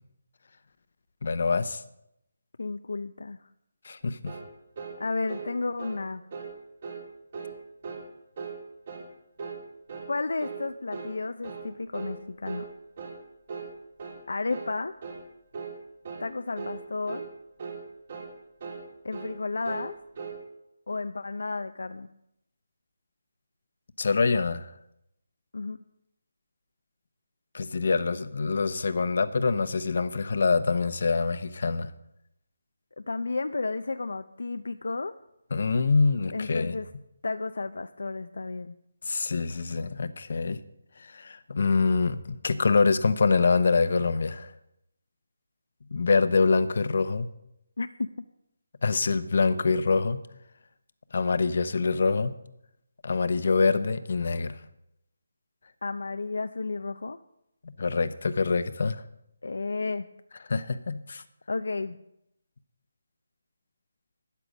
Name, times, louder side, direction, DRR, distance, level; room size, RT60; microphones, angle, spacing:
voice 1, 1.2-1.8 3.8-4.3 24.0-24.7 27.5-31.9 35.5-36.8 39.0-40.6 41.0-44.5 45.9-47.3 48.8-50.2 51.1-52.3 53.0-54.6 57.8-59.0 60.5-61.2, left 4 dB, 60° left, 13 dB, 0.9 m, -25 dB
voice 2, 2.6-3.4 5.0-6.3 10.1-12.7 14.3-14.9 16.2-17.3 19.0-20.0 20.9-22.1 25.5-25.8 33.0-35.2 36.3-36.9 37.2-38.8 47.8-48.1 55.8-57.2 59.4-60.1 61.5-62.0, left 3 dB, 75° left, 10 dB, 0.6 m, -32 dB
sound 1, 4.3-4.5 4.8-5.0 5.3-5.5 5.8-6.0 6.3-6.5 6.8-7.0 7.3-7.6 7.8-8.1 8.4-8.6 8.9-9.1 9.4-9.6 9.9-10.1 10.4-10.6 10.9-11.1 11.4-11.7 11.9-12.2 12.4-12.7 13.0-13.2 13.5-13.7 14.0-14.2 14.5-14.7 15.0-15.2 15.5-15.8 16.0-16.3 16.6-16.8 17.1-17.3 17.6-17.8 18.1-18.3 18.6-18.9 19.1-19.3 19.6-20.4, right 5 dB, 45° right, 3.0 m, -38 dB
13.0 x 9.7 x 5.2 m, 0.82 s
figure-of-eight pair, 160°, 0 cm